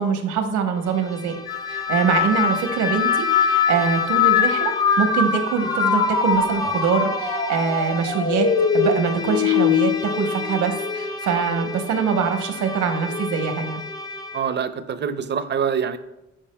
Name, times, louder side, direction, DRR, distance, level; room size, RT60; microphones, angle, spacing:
voice 1, 0.0-1.3 1.7-8.5 8.7-13.8, right 6 dB, 80° right, 5 dB, 1.1 m, -23 dB
Bowed string instrument, 0.7-14.6, left 1 dB, 15° left, 0.6 m, -34 dB
sound 1, 1.5-11.1 11.5-12.1 13.1-13.4, left 6 dB, 85° left, 1.6 m, -22 dB
voice 2, 14.3-16.0, right 7 dB, 35° right, 11 dB, 0.6 m, -25 dB
11.5 x 5.0 x 2.2 m, 0.94 s
cardioid pair, 90°, 30 cm